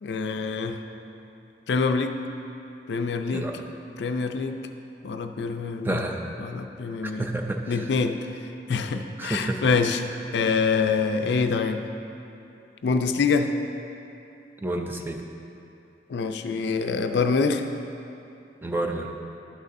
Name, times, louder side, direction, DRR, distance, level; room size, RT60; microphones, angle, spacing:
voice 1, 0.0-0.8 1.7-2.1 2.9-3.5 4.0-4.6 5.0-6.1 6.4-7.3 7.7-8.2 8.7-10.0 10.3-11.8 12.8-13.5 16.1-17.6, left 5 dB, 75° left, 7 dB, 0.4 m, -25 dB
voice 2, 5.8-6.3 7.2-7.6 9.2-9.6 14.6-15.2 18.6-19.1, right 1 dB, 10° right, 2 dB, 0.4 m, -29 dB
11.0 x 6.5 x 2.6 m, 2.7 s
head